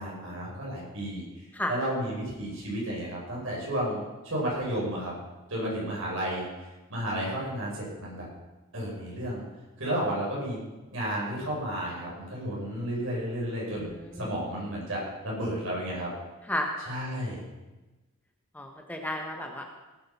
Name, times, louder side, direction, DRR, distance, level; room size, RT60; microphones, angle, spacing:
voice 1, 0.0-5.1 5.5-6.5 6.9-8.3 8.7-9.4 9.8-10.6 10.9-13.9 14.2-16.1 16.8-17.4, right 1 dB, 70° right, -4 dB, 5.9 m, -32 dB
voice 2, 13.8-14.3 16.5-16.7 18.5-19.6, left 1 dB, 5° left, 2 dB, 1.1 m, -33 dB
18.0 x 7.7 x 5.7 m, 1.1 s
head